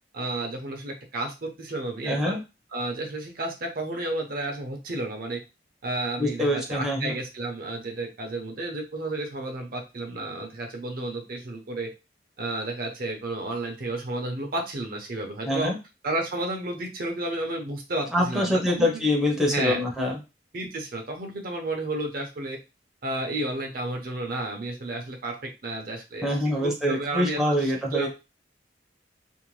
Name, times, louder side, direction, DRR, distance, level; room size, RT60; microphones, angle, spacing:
voice 1, 0.1-2.4 2.7-5.4 5.8-11.9 12.4-15.7 16.0-19.1 19.5-19.8 20.5-22.6 23.0-25.3 25.6-28.1, right 2 dB, 50° right, 3 dB, 0.6 m, -32 dB
voice 2, 2.1-2.4 6.2-7.1 15.5-15.8 18.1-20.2 26.2-28.1, left 1 dB, ahead, -2 dB, 0.6 m, -25 dB
2.6 x 2.1 x 3.0 m, 0.27 s
head